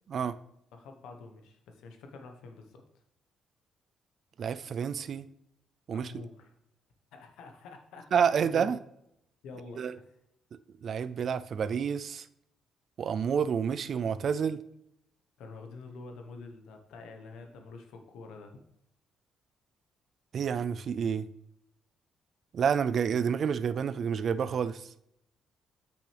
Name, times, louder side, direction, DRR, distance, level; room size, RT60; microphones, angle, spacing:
voice 1, 0.7-2.8 5.9-6.6 7.1-8.1 8.3-8.7 9.4-10.1 15.4-18.6, left 3 dB, 85° left, 5 dB, 1.1 m, -47 dB
voice 2, 4.4-5.3 5.9-6.1 8.1-8.8 9.8-9.9 10.8-12.3 13.0-14.6 20.3-21.3 22.5-24.9, right 7 dB, 50° right, 14 dB, 0.4 m, -29 dB
8.3 x 6.2 x 3.4 m, 0.76 s
cardioid pair, 120°, 0 cm